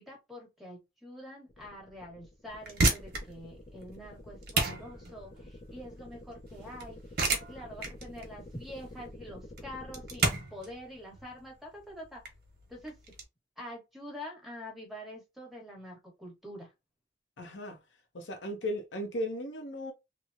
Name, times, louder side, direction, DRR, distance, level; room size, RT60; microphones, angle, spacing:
voice 1, 0.0-12.2 12.7-12.9 13.6-16.7, equal, ahead, 1.2 m, -46 dB
sound 1, 1.5-10.3, left 1 dB, 40° left, 0.6 m, -49 dB
sound 2, 2.5-13.2, right 3 dB, 55° right, 0.9 m, -33 dB
voice 2, 17.4-17.8 18.1-19.9, equal, 90° left, 0.8 m, -36 dB
3.0 x 2.1 x 2.5 m
head